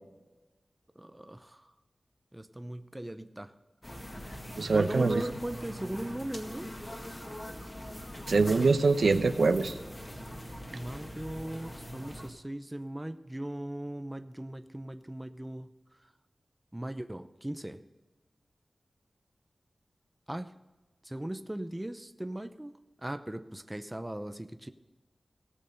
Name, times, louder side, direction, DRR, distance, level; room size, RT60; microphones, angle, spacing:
voice 1, 1.0-1.7 2.3-3.5 4.7-6.7 10.7-15.7 16.7-17.8 20.3-20.5 21.0-22.7 23.0-24.7, right 1 dB, 15° right, 0.7 m, -38 dB
sound 1, 3.8-12.3, equal, 25° left, 1.9 m, -42 dB
voice 2, 4.6-5.2 8.3-9.7, right 4 dB, 80° right, 0.8 m, -24 dB
18.0 x 6.7 x 5.3 m
wide cardioid pair, 90°, 0 cm